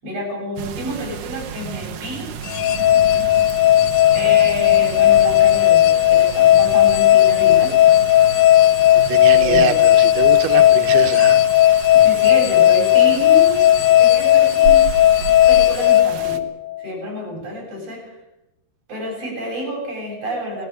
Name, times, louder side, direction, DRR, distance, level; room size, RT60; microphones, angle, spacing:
voice 1, 0.0-2.3 3.1-3.3 4.1-7.8 9.3-9.7 11.9-14.9 15.5-16.5 16.8-18.1 18.9-20.7, equal, 40° right, 0 dB, 9.2 m, -29 dB
sound 1, 0.6-16.4, right 8 dB, 65° right, 2.5 m, -33 dB
sound 2, 2.5-16.8, left 13 dB, 90° left, 2.8 m, -14 dB
voice 2, 9.0-11.4, right 10 dB, 90° right, 6 dB, 3.0 m, -24 dB
19.0 x 15.0 x 9.8 m, 0.93 s
omnidirectional pair, 4.4 m